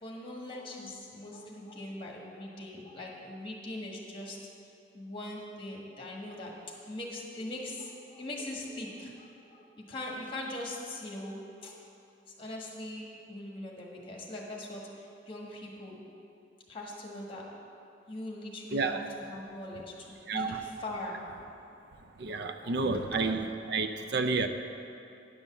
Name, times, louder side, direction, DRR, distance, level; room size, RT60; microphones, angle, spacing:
voice 1, 0.0-4.4 4.9-6.6 6.9-11.9 12.3-16.0 16.7-17.6 18.1-21.2 22.3-23.2, left 1 dB, 30° left, -2 dB, 1.5 m, -41 dB
voice 2, 18.7-19.0 20.3-20.6 22.2-24.5, right 4 dB, 60° right, 8 dB, 0.5 m, -30 dB
10.0 x 5.4 x 7.2 m, 2.7 s
head